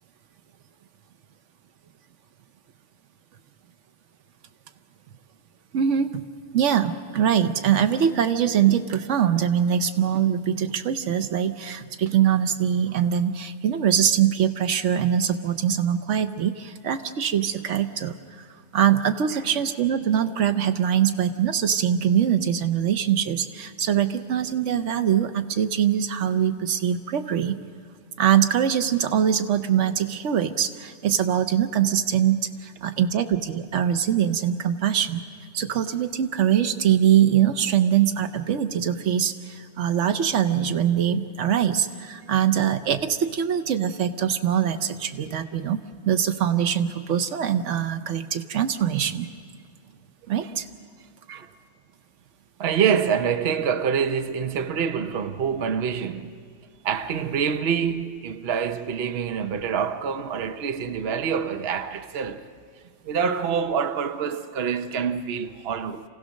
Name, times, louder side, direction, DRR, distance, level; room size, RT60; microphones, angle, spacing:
voice 1, 5.7-6.2 6.5-18.4 18.7-27.6 28.2-35.2 35.5-45.8 46.1-49.3 50.3-50.7, right 9 dB, 85° right, 1.1 m, -23 dB
voice 2, 52.6-56.3 56.8-62.5 63.0-66.0, right 7 dB, 60° right, 1.0 m, -26 dB
27.0 x 16.5 x 6.4 m
omnidirectional pair, 1.2 m